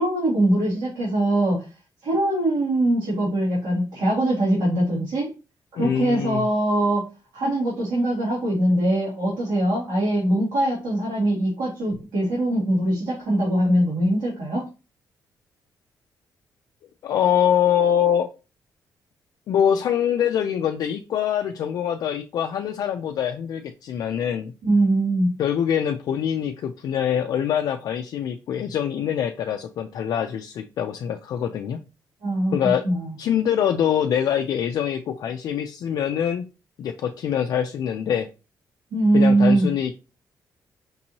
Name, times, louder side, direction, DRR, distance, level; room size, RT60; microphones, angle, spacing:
voice 1, 0.0-1.7 2.0-5.3 5.7-7.1 7.3-14.7 24.6-25.3 32.2-32.5 32.8-33.1 38.9-39.7, right 1 dB, 80° right, -7 dB, 2.2 m, -22 dB
voice 2, 5.8-6.5 17.0-18.3 19.5-24.5 25.4-31.8 32.5-32.8 33.2-36.5 36.8-38.3 39.1-39.9, left 9 dB, 60° left, 5 dB, 0.3 m, -24 dB
5.2 x 2.8 x 2.9 m, 0.30 s
cardioid pair, 175°, 7 cm